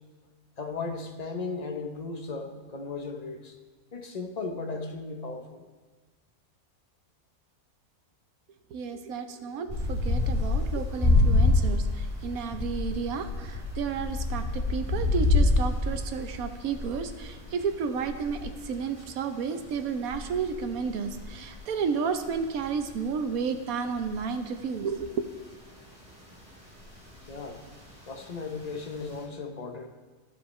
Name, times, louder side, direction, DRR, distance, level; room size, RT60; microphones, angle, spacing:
voice 1, 0.6-3.6 3.9-5.7 27.3-27.6 28.1-29.9, left 4 dB, 35° left, 4 dB, 0.7 m, -36 dB
voice 2, 8.7-25.3, right 6 dB, 80° right, 8 dB, 1.2 m, -32 dB
sound 1, 9.7-25.0 25.5-26.4 26.8-28.1 28.3-29.2, left 2 dB, 5° right, 3.3 m, -27 dB
14.0 x 7.8 x 3.2 m, 1.3 s
omnidirectional pair, 1.5 m